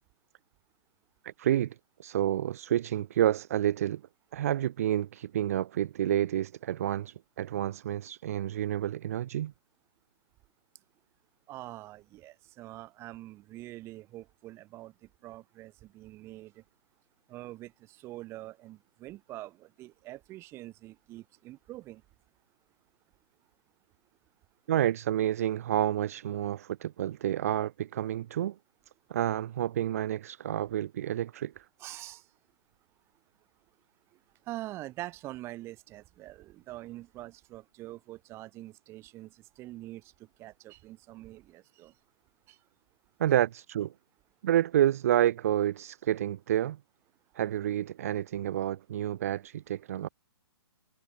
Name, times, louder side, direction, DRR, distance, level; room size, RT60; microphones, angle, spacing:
voice 1, 1.2-4.0 4.3-9.5 24.7-28.6 29.1-31.6 43.2-43.9 44.4-46.8 47.4-50.1, right 11 dB, 35° right, 0.4 m, -29 dB
voice 2, 11.5-14.9 15.2-16.6 17.3-22.0 31.8-32.2 34.5-41.9 42.5-42.6, right 16 dB, 15° right, 5.1 m, -45 dB
hypercardioid pair, 160°, 14 cm